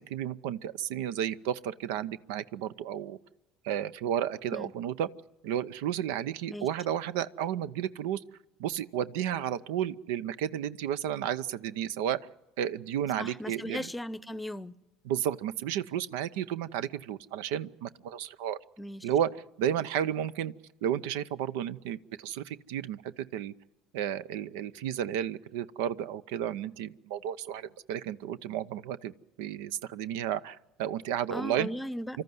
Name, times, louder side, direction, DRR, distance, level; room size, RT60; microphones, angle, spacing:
voice 1, 0.0-3.2 3.6-5.1 5.4-8.2 8.6-12.2 12.6-13.9 15.0-18.6 19.0-20.5 20.8-23.5 23.9-31.7, right 10 dB, 85° right, 0.6 m, -32 dB
voice 2, 13.2-14.8 18.8-19.1 31.3-32.2, left 1 dB, 10° left, 0.8 m, -37 dB
25.5 x 13.5 x 9.4 m
supercardioid pair, 95°, 0 cm